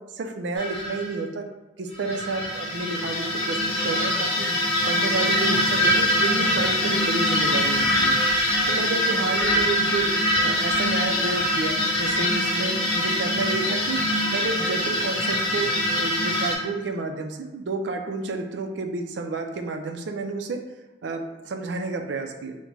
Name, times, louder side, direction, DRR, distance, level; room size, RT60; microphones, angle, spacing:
voice 1, 0.0-1.5 1.8-8.1 8.7-10.1 10.4-14.0 14.3-20.6 21.0-22.6, right 3 dB, 70° right, 5 dB, 0.4 m, -30 dB
sound 1, 0.6-1.0 1.9-16.5, left 1 dB, 30° left, 0.9 m, -23 dB
5.0 x 2.1 x 3.1 m, 1.0 s
head